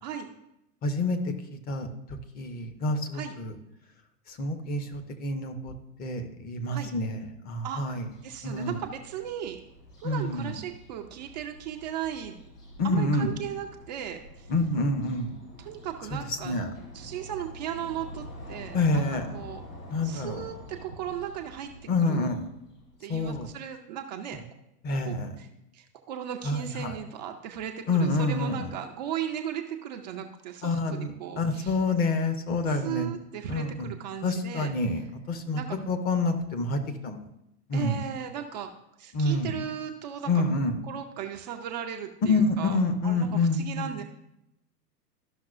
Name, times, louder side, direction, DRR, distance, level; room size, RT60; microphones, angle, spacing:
voice 1, 0.8-1.9 2.3-3.5 4.3-5.7 6.0-7.2 7.5-8.1 8.4-8.8 10.0-10.6 12.8-13.3 14.5-15.3 16.4-16.7 18.7-19.3 19.9-20.4 21.9-22.4 23.1-23.5 24.8-25.3 26.4-26.9 27.9-28.7 30.6-33.1 33.5-33.9 34.2-35.6 35.9-37.2 37.7-38.0 39.1-39.5 40.3-40.7 42.3-43.9, left 2 dB, 20° left, 7 dB, 0.6 m, -27 dB
voice 2, 7.6-9.6 10.0-12.4 12.8-14.5 15.6-16.6 16.9-19.0 19.3-19.6 20.0-21.7 22.0-22.3 23.0-24.4 25.0-25.5 25.7-31.8 32.7-34.7 35.5-35.8 37.7-38.7 39.0-40.4 40.9-44.0, right 9 dB, 30° right, 4 dB, 0.4 m, -37 dB
sound 1, 7.9-22.9, equal, 75° left, 3.2 m, -47 dB
12.5 x 5.8 x 2.4 m, 0.85 s
figure-of-eight pair, 100°, 48 cm